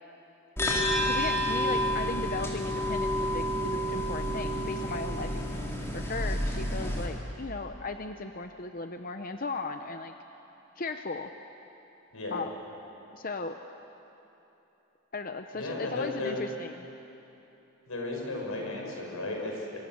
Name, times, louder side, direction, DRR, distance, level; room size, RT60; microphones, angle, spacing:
sound 1, 0.6-7.1, equal, 10° left, 3.3 m, -29 dB
voice 1, 1.1-10.1 10.8-11.3 12.3-12.6 13.1-13.6 15.1-16.9, left 3 dB, 40° left, 7 dB, 0.8 m, -37 dB
voice 2, 15.5-16.4 17.9-19.8, left 2 dB, 90° left, 0 dB, 6.3 m, -35 dB
26.0 x 25.5 x 7.7 m, 3.0 s
head